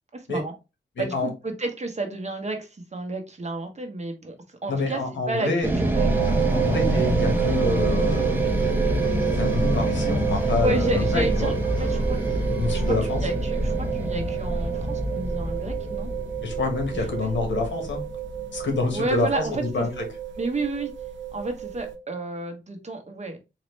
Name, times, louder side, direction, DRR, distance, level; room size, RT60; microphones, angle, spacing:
voice 1, 0.1-0.5 1.0-5.0 5.3-5.5 5.8-6.2 10.3-16.1 17.0-17.3 18.9-19.9 20.4-20.9 21.3-23.4, right 2 dB, 35° right, 4 dB, 1.1 m, -31 dB
voice 2, 1.0-1.3 4.7-5.7 6.5-8.5 9.3-11.5 12.5-13.2 16.4-18.0 18.5-20.0, left 3 dB, 85° left, 3 dB, 1.5 m, -27 dB
sound 1, 5.6-19.9, right 1 dB, 10° right, 1.0 m, -26 dB
sound 2, 5.9-22.0, right 10 dB, 90° right, 0.7 m, -30 dB
sound 3, 6.2-13.0, left 3 dB, 25° left, 0.6 m, -40 dB
4.1 x 2.9 x 3.2 m, 0.26 s
wide cardioid pair, 100°, 19 cm